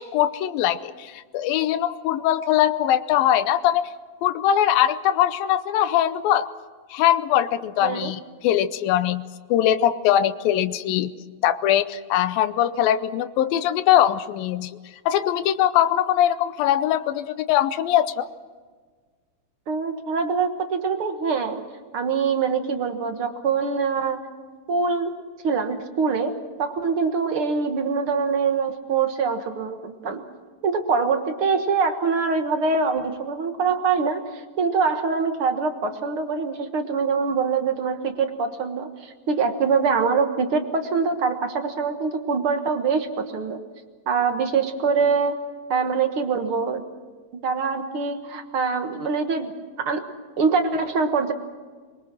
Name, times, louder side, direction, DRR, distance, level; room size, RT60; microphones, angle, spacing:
voice 1, 0.0-3.9 4.2-6.5 6.9-9.2 9.5-11.1 11.4-14.7 15.1-18.3, left 11 dB, 85° left, 12 dB, 2.6 m, -21 dB
voice 2, 7.8-8.1 19.7-21.6 21.9-24.2 24.7-25.1 25.4-26.3 26.6-30.2 30.6-43.6 44.1-45.4 45.7-46.8 47.4-49.5 49.8-50.0 50.4-51.3, right 5 dB, 50° right, 7 dB, 1.8 m, -24 dB
24.0 x 23.0 x 6.3 m, 1.5 s
omnidirectional pair, 4.0 m